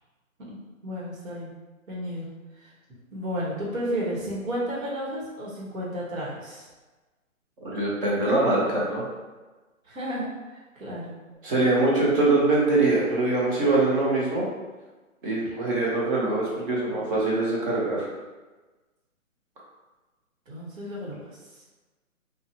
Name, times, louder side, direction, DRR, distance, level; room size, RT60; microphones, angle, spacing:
voice 1, 0.4-1.5 1.9-2.3 3.1-6.7 9.9-10.3 10.5-11.2 20.5-21.2, equal, 70° right, -6 dB, 1.3 m, -32 dB
voice 2, 7.6-9.0 11.4-14.5 15.2-18.1, right 2 dB, 40° right, -5 dB, 1.0 m, -23 dB
2.8 x 2.4 x 2.7 m, 1.2 s
hypercardioid pair, 145°, 42 cm